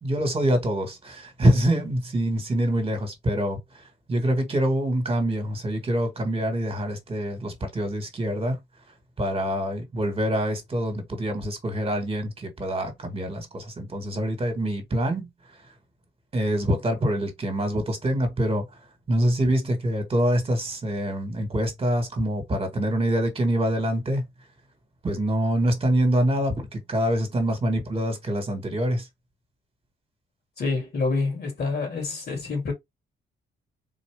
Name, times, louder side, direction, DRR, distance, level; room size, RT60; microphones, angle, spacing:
voice 1, 0.0-8.6 9.2-15.7 16.3-18.8 19.1-24.2 25.0-29.1, equal, 30° right, 1.6 m, -25 dB
voice 2, 30.6-32.7, left 3 dB, 55° left, 2.3 m, -27 dB
4.0 x 2.6 x 3.4 m
cardioid pair, 90°, 20 cm